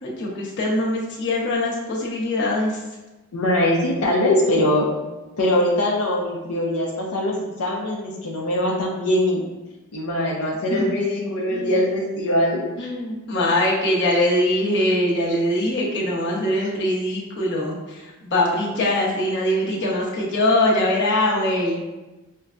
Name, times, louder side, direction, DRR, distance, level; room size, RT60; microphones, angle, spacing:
voice 1, 0.0-2.8 10.7-10.9 11.5-11.8 12.8-21.8, left 1 dB, 55° left, -5 dB, 0.9 m, -22 dB
voice 2, 3.3-4.9 5.4-9.4 9.9-12.6, left 1 dB, 85° left, -4 dB, 0.6 m, -22 dB
5.4 x 2.2 x 2.4 m, 1.1 s
head